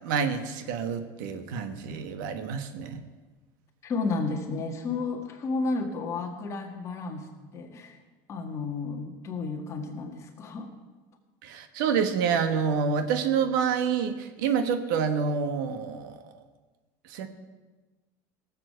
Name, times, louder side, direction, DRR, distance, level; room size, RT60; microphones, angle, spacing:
voice 1, 0.0-3.0 11.4-16.3 17.1-17.3, right 6 dB, 80° right, 9 dB, 1.4 m, -28 dB
voice 2, 3.8-7.3 7.5-8.0 8.3-10.7, left 3 dB, 30° left, 3 dB, 1.7 m, -32 dB
17.5 x 7.6 x 6.7 m, 1.3 s
cardioid pair, 165°, 10 cm